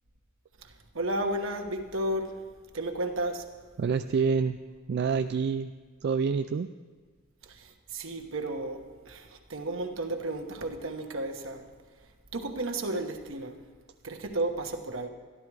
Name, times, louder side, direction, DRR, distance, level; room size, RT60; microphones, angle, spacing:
voice 1, 0.6-2.3 2.7-3.5 7.5-11.6 12.3-13.6 14.0-15.1, right 1 dB, 75° right, 5 dB, 1.1 m, -33 dB
voice 2, 3.8-4.6 4.9-5.7 6.0-6.7, right 5 dB, 55° right, 8 dB, 0.3 m, -27 dB
13.0 x 11.5 x 4.7 m, 1.5 s
head